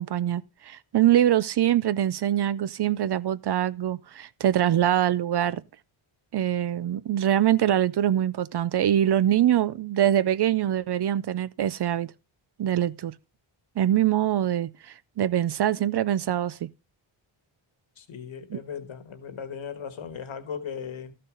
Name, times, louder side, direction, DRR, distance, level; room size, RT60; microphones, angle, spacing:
voice 1, 0.0-5.6 6.3-12.1 12.6-13.1 13.8-16.7 18.5-18.6, right 11 dB, 55° right, 0.5 m, -24 dB
voice 2, 18.0-21.2, left 7 dB, 70° left, 1.5 m, -37 dB
13.5 x 6.6 x 3.8 m
wide cardioid pair, 155°, 49 cm